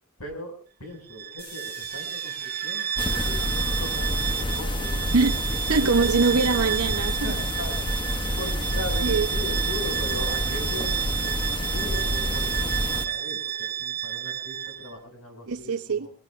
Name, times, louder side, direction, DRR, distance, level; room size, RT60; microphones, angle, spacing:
voice 1, 0.2-6.1 7.2-16.1, left 1 dB, 80° left, 6.2 m, -39 dB
Bowed string instrument, 1.1-14.9, right 10 dB, 45° right, 0.9 m, -31 dB
sound 1, 1.4-7.3, left 2 dB, 45° left, 5.6 m, -48 dB
sound 2, 3.0-13.1, left 1 dB, 20° left, 0.8 m, -28 dB
voice 2, 5.7-7.2 9.0-9.3 15.5-16.1, right 4 dB, 85° right, 0.8 m, -22 dB
23.5 x 20.0 x 2.5 m
head